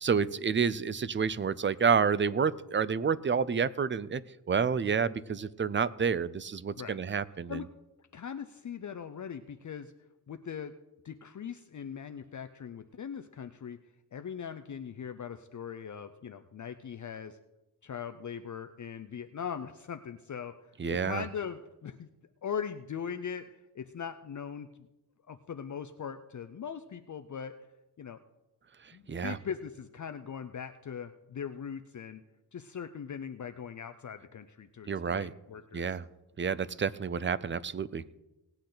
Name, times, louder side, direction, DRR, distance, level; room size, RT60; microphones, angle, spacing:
voice 1, 0.0-4.2 4.5-7.6 20.8-21.2 29.1-29.4 34.9-35.3 35.7-36.0 36.4-38.0, right 6 dB, 30° right, 18 dB, 0.4 m, -29 dB
voice 2, 8.1-9.9 10.3-10.7 11.0-13.8 14.1-17.4 17.8-20.5 20.9-22.1 22.4-24.7 25.3-27.5 28.0-28.2 28.9-32.2 32.5-35.9, left 7 dB, 45° left, 8 dB, 0.6 m, -40 dB
18.5 x 8.8 x 3.9 m, 0.99 s
wide cardioid pair, 110°, 41 cm